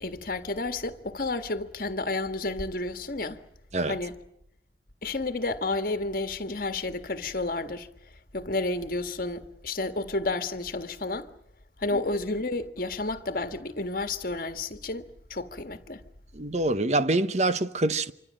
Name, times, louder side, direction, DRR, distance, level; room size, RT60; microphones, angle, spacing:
voice 1, 0.0-3.4 3.9-4.2 5.0-7.9 8.3-11.3 11.8-16.0, left 2 dB, 50° left, 1.8 m, -31 dB
voice 2, 16.3-18.1, right 2 dB, 40° right, 0.9 m, -25 dB
26.5 x 25.0 x 7.6 m
head